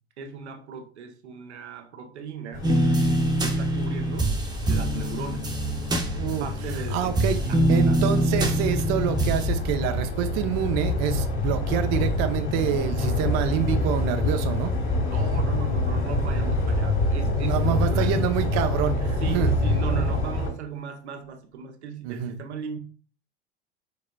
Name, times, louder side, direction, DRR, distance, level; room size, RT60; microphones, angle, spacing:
voice 1, 0.2-2.7 3.4-4.3 4.7-5.5 6.2-7.2 7.5-7.6 7.9-8.1 15.1-18.2 19.2-22.8, right 6 dB, 80° right, 1.0 m, -37 dB
sound 1, 2.5-20.5, left 2 dB, 40° left, 2.3 m, -26 dB
sound 2, 2.6-6.8 7.2-9.5, right 1 dB, 10° right, 0.9 m, -24 dB
voice 2, 6.2-6.5 6.9-7.4 7.7-14.7 17.4-19.5 22.0-22.3, right 10 dB, 50° right, 0.7 m, -27 dB
5.0 x 4.1 x 2.2 m
hypercardioid pair, 85°, 33 cm